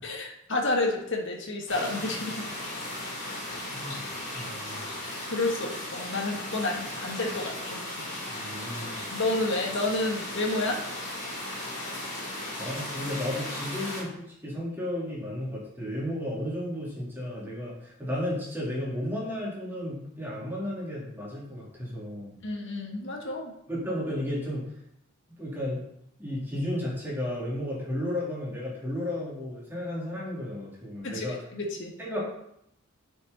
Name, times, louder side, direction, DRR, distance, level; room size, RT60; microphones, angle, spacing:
voice 1, 0.0-2.4 5.2-7.8 9.1-10.8 22.4-23.5 31.0-32.0, left 2 dB, 65° left, 1 dB, 1.8 m, -30 dB
sound 1, 1.7-14.0, left 1 dB, 40° left, 3.6 m, -36 dB
voice 2, 3.7-4.1 4.3-4.8 8.3-9.0 12.6-22.3 23.7-24.7 25.4-25.8 26.2-31.4 32.0-32.2, left 1 dB, 10° right, -7 dB, 3.7 m, -33 dB
9.2 x 6.4 x 4.2 m, 0.76 s
head